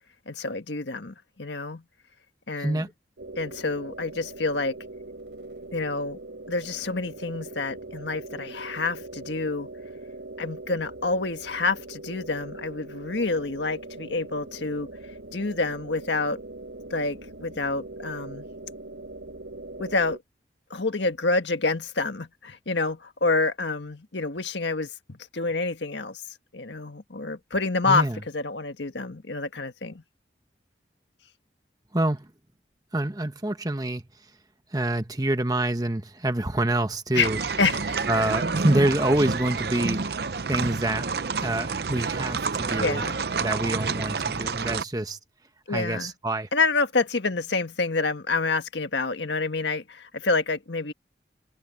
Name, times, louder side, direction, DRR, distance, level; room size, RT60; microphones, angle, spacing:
voice 1, 0.3-1.8 2.5-2.9 3.4-4.8 5.7-6.2 6.5-9.7 10.4-14.9 15.3-16.4 16.9-18.4 19.8-20.2 20.7-24.9 25.3-26.2 26.5-28.0 28.3-30.0 37.1-37.3 37.6-38.1 42.8-43.2 45.7-46.1 46.5-50.9, left 3 dB, 80° left, 1.6 m, -28 dB
voice 2, 2.6-2.9 27.8-28.2 31.9-32.3 32.9-34.0 34.7-37.4 38.1-40.0 40.5-41.1 41.4-43.0 43.4-45.2 45.7-46.5, right 1 dB, 20° right, 1.1 m, -26 dB
sound 1, 3.2-20.2, right 2 dB, 80° right, 4.5 m, -41 dB
sound 2, 37.2-44.8, right 4 dB, 60° right, 0.7 m, -29 dB
head